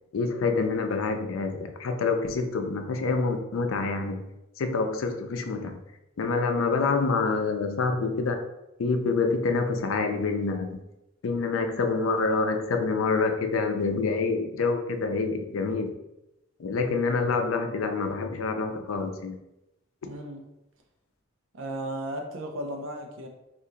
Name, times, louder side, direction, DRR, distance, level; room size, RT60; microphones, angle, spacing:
voice 1, 0.1-4.2 4.6-5.8 6.2-8.4 8.8-10.8 11.2-15.9 16.6-19.4, left 4 dB, 90° left, 6 dB, 0.4 m, -27 dB
voice 2, 20.0-20.5 21.5-23.3, right 1 dB, 70° right, 3 dB, 0.6 m, -35 dB
2.8 x 2.5 x 3.7 m, 0.91 s
head